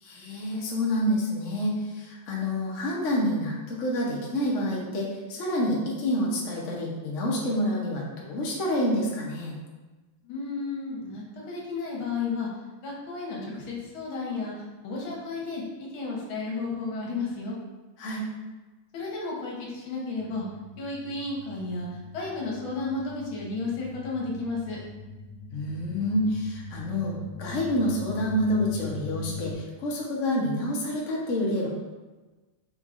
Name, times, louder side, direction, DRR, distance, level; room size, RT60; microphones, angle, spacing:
voice 1, 0.0-9.6 18.0-18.2 25.5-31.7, left 1 dB, 50° left, -3 dB, 0.9 m, -28 dB
voice 2, 10.2-12.5 12.8-14.5 14.8-17.6 18.9-20.4 20.8-21.9 22.1-24.8, left 3 dB, 75° left, -3 dB, 1.8 m, -33 dB
sound 1, 20.2-29.5, left 2 dB, 30° right, 1.2 m, -42 dB
5.5 x 3.5 x 2.5 m, 1.2 s
omnidirectional pair, 2.3 m